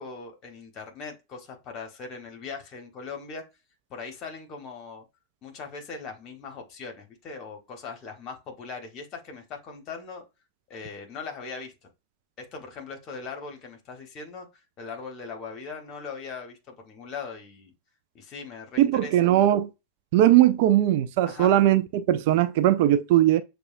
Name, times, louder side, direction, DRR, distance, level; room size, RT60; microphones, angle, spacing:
voice 1, 0.0-3.4 3.9-5.0 5.4-10.2 10.7-11.9 12.4-14.5 14.8-17.7 18.1-19.3 21.2-21.5, left 4 dB, 35° left, 1.3 m, -40 dB
voice 2, 18.8-19.7 20.1-23.4, right 13 dB, 50° right, 0.3 m, -20 dB
6.8 x 2.3 x 2.5 m
figure-of-eight pair, 90°, 0 cm